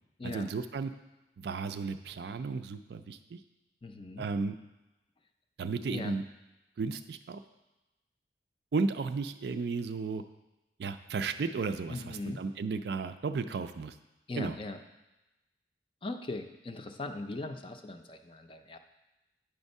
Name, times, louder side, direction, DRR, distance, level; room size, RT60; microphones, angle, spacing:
voice 1, 0.2-0.9 1.4-3.4 4.2-4.6 5.6-6.2 6.8-7.4 8.7-10.2 10.8-13.9 14.4-14.6, right 4 dB, 65° right, 10 dB, 0.4 m, -34 dB
voice 2, 3.8-4.3 5.9-6.1 11.9-12.4 14.3-14.8 16.0-18.8, left 2 dB, 30° left, 7 dB, 0.4 m, -39 dB
8.8 x 3.6 x 5.3 m, 1.0 s
head